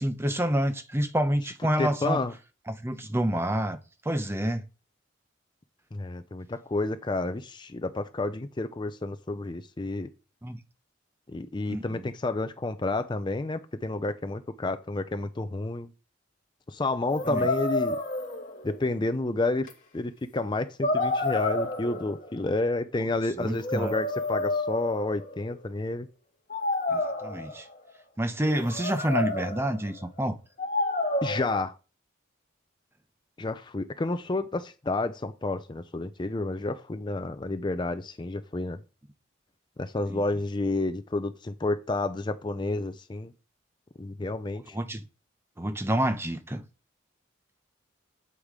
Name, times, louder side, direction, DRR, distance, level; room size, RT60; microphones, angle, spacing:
voice 1, 0.0-2.2 2.7-3.8 4.0-4.6 10.4-10.6 11.7-12.0 17.3-17.5 23.4-23.9 26.9-27.7 28.2-30.4 40.1-40.2 44.7-45.0 45.6-46.6, right 1 dB, 15° right, 0.7 m, -28 dB
voice 2, 1.8-2.3 5.9-10.1 11.3-15.9 16.7-18.0 18.6-19.7 19.9-26.1 31.2-31.7 33.4-38.8 39.8-43.3 44.0-44.7, left 2 dB, 25° left, 0.4 m, -30 dB
sound 1, 17.1-18.8 19.7-19.8 20.8-22.3 23.3-25.6 26.5-27.7 28.4-29.8 30.6-31.6, left 2 dB, 40° left, 2.1 m, -30 dB
8.2 x 8.1 x 3.7 m
head